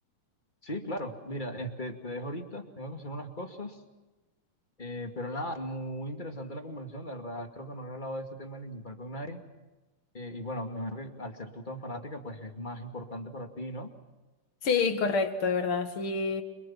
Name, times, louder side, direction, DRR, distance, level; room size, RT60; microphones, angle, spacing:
voice 1, 0.6-3.8 4.8-9.4 10.1-13.9, equal, 15° left, 4 dB, 1.8 m, -38 dB
voice 2, 14.6-16.4, left 4 dB, 45° left, 7 dB, 2.2 m, -27 dB
30.0 x 24.5 x 5.8 m, 1.1 s
omnidirectional pair, 3.8 m